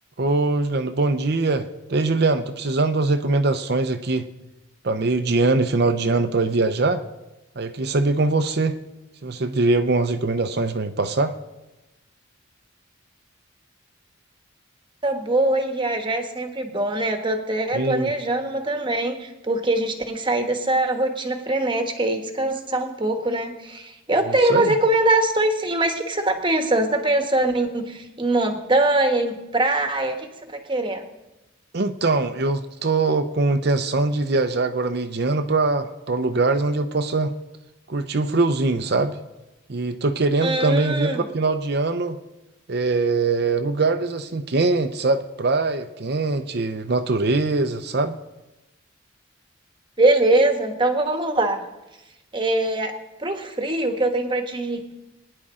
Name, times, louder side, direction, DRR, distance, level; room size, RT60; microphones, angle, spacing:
voice 1, 0.2-4.3 4.8-7.0 7.6-8.8 9.2-11.3 17.7-18.1 24.5-24.7 31.7-37.3 37.9-39.2 39.7-42.2 42.7-48.1, right 3 dB, 55° right, 8 dB, 0.7 m, -22 dB
voice 2, 15.0-31.0 40.4-41.3 50.0-51.7 52.3-52.9 53.2-54.9, right 2 dB, 25° right, 5 dB, 1.3 m, -22 dB
22.5 x 9.9 x 3.7 m, 1.0 s
head